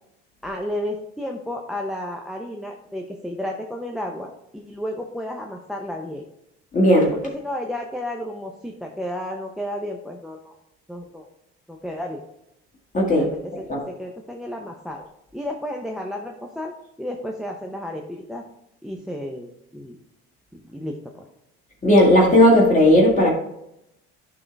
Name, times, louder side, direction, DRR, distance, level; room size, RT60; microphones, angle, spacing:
voice 1, 0.4-6.2 7.1-10.5 10.9-11.3 11.7-12.2 13.2-15.1 15.3-16.7 17.0-18.4 18.8-20.0 20.5-21.2, left 1 dB, ahead, 1 dB, 0.8 m, -32 dB
voice 2, 6.7-7.1 12.9-13.3 13.7-13.8 21.8-23.3, left 1 dB, 25° left, -3 dB, 2.0 m, -15 dB
11.0 x 3.9 x 3.4 m, 0.83 s
supercardioid pair, 80°, 29 cm